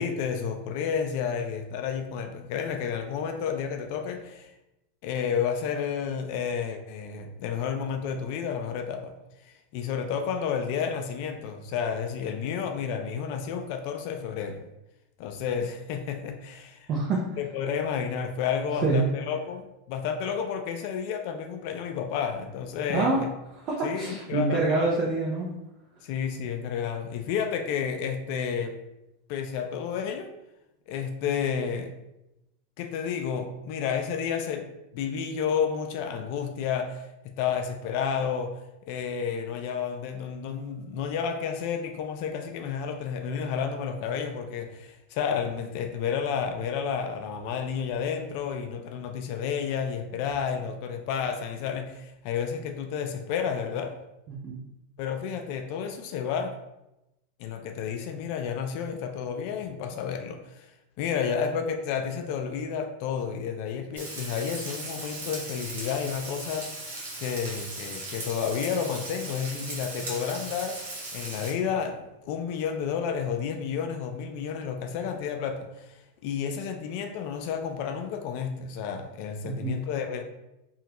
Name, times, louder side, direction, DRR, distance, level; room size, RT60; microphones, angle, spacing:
voice 1, 0.0-4.5 5.0-9.1 9.4-14.6 15.2-16.9 17.4-23.3 23.8-24.9 26.0-28.8 29.3-30.3 30.9-31.9 32.8-38.6 38.9-54.0 55.0-56.5 57.4-60.7 61.0-66.9 67.2-80.2, left 7 dB, 60° left, 5 dB, 0.3 m, -31 dB
voice 2, 16.9-17.2 18.8-19.0 22.9-23.2 23.6-25.5 54.3-54.6 79.4-79.8, right 3 dB, 45° right, -4 dB, 0.6 m, -26 dB
Frying (food), 64.0-71.5, right 2 dB, 80° right, 1.1 m, -38 dB
3.0 x 2.4 x 2.9 m, 0.92 s
hypercardioid pair, 105°, 0 cm